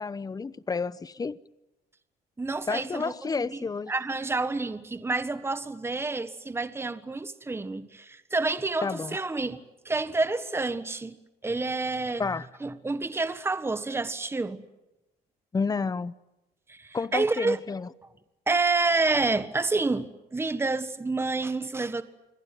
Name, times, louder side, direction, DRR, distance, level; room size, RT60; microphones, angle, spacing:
voice 1, 0.0-1.4 2.7-3.9 8.8-9.2 12.2-12.5 15.5-16.1 16.9-17.9, left 4 dB, 20° left, 0.9 m, -30 dB
voice 2, 2.4-3.1 3.5-3.6 3.9-11.2 11.4-12.2 12.6-14.6 16.7-17.6 18.5-22.0, right 3 dB, 15° right, 1.5 m, -28 dB
28.0 x 21.5 x 9.2 m
cardioid pair, 110°, 17 cm